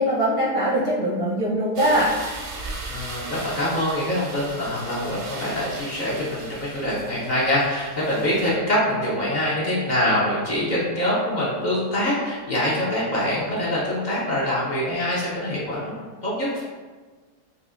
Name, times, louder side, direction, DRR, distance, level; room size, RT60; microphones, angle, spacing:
voice 1, 0.0-2.1, equal, 40° right, -9 dB, 0.4 m, -21 dB
sound 1, 1.8-8.5, right 2 dB, 75° right, 1.2 m, -37 dB
voice 2, 2.9-15.9 16.2-16.7, left 1 dB, 80° left, -7 dB, 0.4 m, -24 dB
5.0 x 2.4 x 2.5 m, 1.4 s
omnidirectional pair, 1.7 m